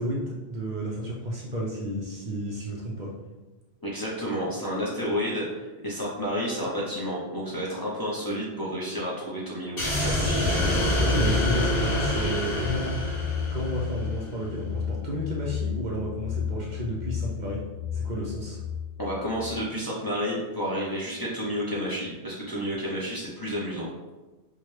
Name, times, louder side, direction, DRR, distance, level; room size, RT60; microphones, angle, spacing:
voice 1, 0.0-3.2 11.0-13.0 13.5-17.6 17.9-18.6, equal, 55° right, -3 dB, 0.6 m, -31 dB
voice 2, 3.8-10.5 19.0-23.9, equal, 25° left, -7 dB, 0.6 m, -31 dB
sound 1, 9.8-14.1, left 1 dB, 65° left, 1.3 m, -26 dB
sound 2, 11.9-19.7, left 7 dB, 85° left, 1.5 m, -33 dB
4.5 x 2.2 x 3.1 m, 1.2 s
omnidirectional pair, 1.1 m